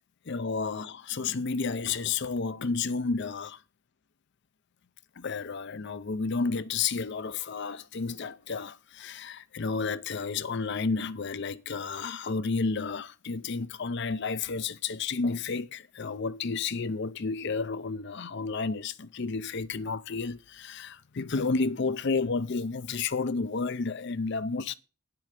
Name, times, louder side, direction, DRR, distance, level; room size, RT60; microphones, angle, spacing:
voice 1, 0.3-3.6 5.2-24.8, left 4 dB, 50° left, 0.5 m, -31 dB
9.8 x 7.7 x 4.8 m
head